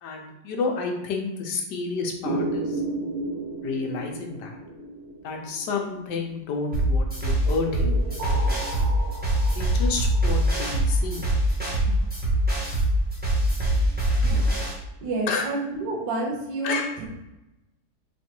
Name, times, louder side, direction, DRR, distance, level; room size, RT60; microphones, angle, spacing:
voice 1, 0.0-2.8 3.6-4.6 5.2-8.9 9.5-11.2 11.9-12.0 15.3-15.5 16.6-16.9, left 4 dB, 75° left, 3 dB, 1.2 m, -30 dB
sound 1, 2.2-6.5 7.5-11.3, right 2 dB, 55° right, 0.8 m, -34 dB
sound 2, 6.7-14.7, equal, 5° right, 1.0 m, -23 dB
voice 2, 15.0-17.1, right 2 dB, 85° right, -1 dB, 1.6 m, -29 dB
4.4 x 3.1 x 2.9 m, 0.95 s
omnidirectional pair, 1.9 m